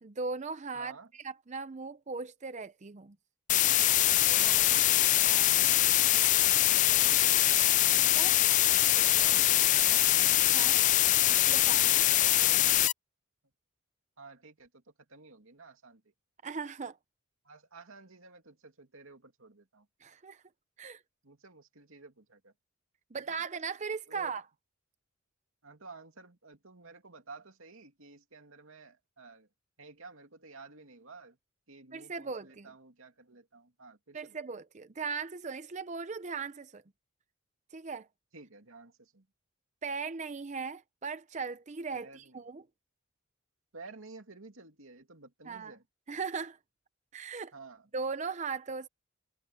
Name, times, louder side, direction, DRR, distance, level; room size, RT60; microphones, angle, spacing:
voice 1, 0.0-3.2 5.2-5.5 8.2-8.4 10.5-10.8 11.3-12.1 16.4-17.0 20.0-20.4 20.8-21.0 23.1-24.5 31.9-32.7 34.1-36.8 37.7-38.1 39.8-42.6 45.5-45.8 46.1-46.6 47.1-47.5 47.9-48.9, right 5 dB, 35° right, 0.6 m, -38 dB
voice 2, 0.7-1.1 4.2-4.9 6.6-6.9 8.9-9.5 9.9-10.1 12.0-12.6 14.2-14.8 15.1-16.0 17.4-19.9 21.2-22.5 23.1-23.4 24.1-24.4 25.6-29.5 29.8-31.4 31.7-34.4 38.3-39.3 41.9-42.4 43.7-45.8 47.5-47.9, right 3 dB, 75° right, 2.6 m, -52 dB
sound 1, 3.5-12.9, left 14 dB, 35° left, 0.3 m, -23 dB
head